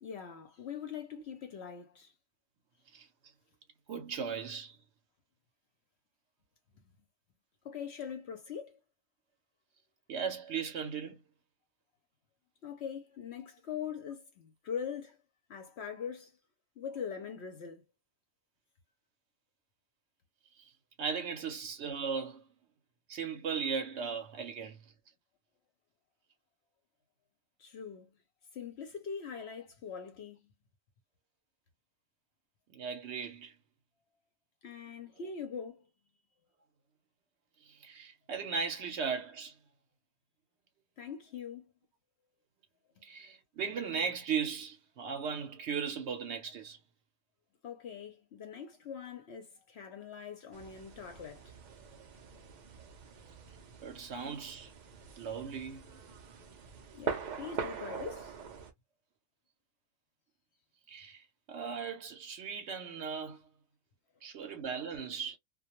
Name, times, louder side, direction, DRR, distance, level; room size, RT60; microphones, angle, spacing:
voice 1, 0.0-2.1 7.6-8.8 12.6-15.2 15.5-16.3 16.8-17.8 27.6-28.1 28.5-30.4 34.6-35.8 41.0-41.6 47.6-51.5 56.9-58.3, left 7 dB, 60° left, 0.8 m, -42 dB
voice 2, 3.9-4.8 10.1-11.2 21.0-22.4 23.1-24.8 32.7-33.5 37.7-39.5 43.0-46.8 53.8-54.7 55.2-55.8 60.9-63.4 64.2-65.4, right 6 dB, 65° right, 0.8 m, -37 dB
sound 1, 50.5-58.7, right 5 dB, 90° right, 0.4 m, -43 dB
2.2 x 2.2 x 2.8 m
omnidirectional pair, 1.4 m